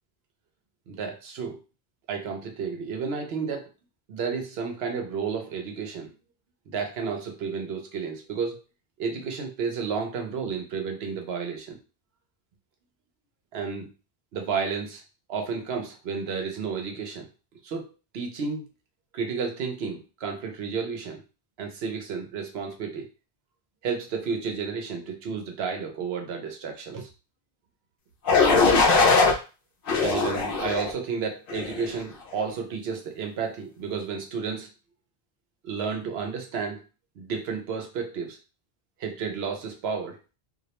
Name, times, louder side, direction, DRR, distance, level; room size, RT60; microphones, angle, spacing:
voice 1, 0.9-1.6 2.1-3.7 4.1-6.1 6.7-8.6 9.0-11.8 13.5-13.9 14.3-15.0 15.3-17.3 17.6-17.9 18.1-18.7 19.1-21.2 21.6-23.1 23.8-27.1 30.0-34.7 35.6-36.8 37.2-38.4 39.0-40.2, right 5 dB, 80° right, 3 dB, 0.9 m, -32 dB
sound 1, 28.3-29.3 29.9-30.9 31.5-31.9, left 4 dB, 65° left, 0.7 m, -20 dB
2.4 x 2.0 x 2.8 m, 0.32 s
omnidirectional pair, 1.0 m